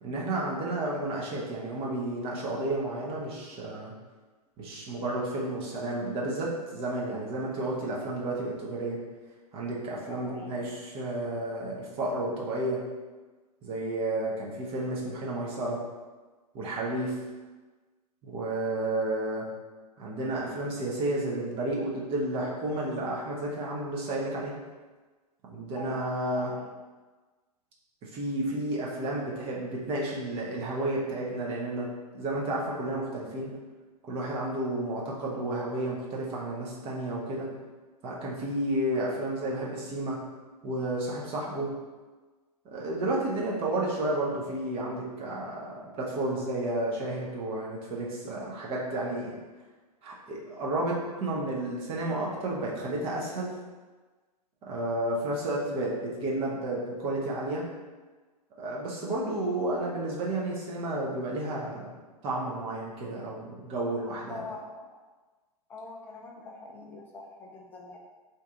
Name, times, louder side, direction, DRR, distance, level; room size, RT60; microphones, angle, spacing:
voice 1, 0.0-3.9 4.6-9.0 9.5-12.8 13.6-15.8 16.5-17.2 18.2-19.4 20.0-24.5 25.5-26.5 28.0-31.9 32.1-33.5 34.0-37.5 38.0-40.2 40.6-41.7 42.7-49.4 50.0-53.5 54.6-57.6 58.6-61.9 62.2-64.4, right 1 dB, 25° right, -4 dB, 0.7 m, -31 dB
voice 2, 10.2-10.7 25.7-26.1 26.5-26.7 64.3-64.7 65.7-68.0, left 2 dB, 10° left, -1 dB, 0.3 m, -43 dB
2.7 x 2.4 x 3.6 m, 1.3 s
figure-of-eight pair, 105°, 21 cm